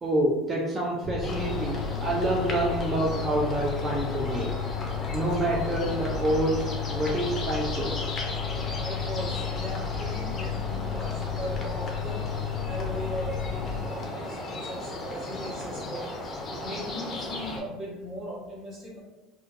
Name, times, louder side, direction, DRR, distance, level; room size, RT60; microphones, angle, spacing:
voice 1, 0.0-4.5 5.1-7.9, right 1 dB, 20° right, -3 dB, 0.3 m, -27 dB
Mechanical fan, 1.0-13.8, left 7 dB, 65° right, 1.0 m, -33 dB
sound 1, 1.2-17.6, left 2 dB, 30° left, 0.6 m, -36 dB
voice 2, 8.7-12.2 12.7-19.0, equal, 40° right, -7 dB, 1.2 m, -38 dB
2.5 x 2.2 x 2.4 m, 1.1 s
cardioid pair, 140°, 0 cm